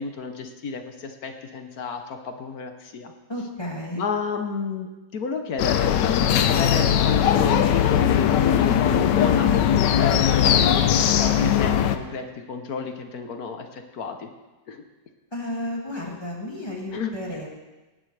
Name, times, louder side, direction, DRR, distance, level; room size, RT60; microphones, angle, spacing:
voice 1, 0.0-3.1 3.9-10.9 11.2-14.3 14.7-14.8 16.9-17.1, left 5 dB, 60° left, 6 dB, 1.3 m, -32 dB
voice 2, 3.3-4.0 15.3-17.5, left 1 dB, 15° left, -2 dB, 2.1 m, -32 dB
sound 1, 5.6-12.0, left 9 dB, 85° left, 1.3 m, -19 dB
18.5 x 10.0 x 3.3 m, 1.1 s
omnidirectional pair, 1.8 m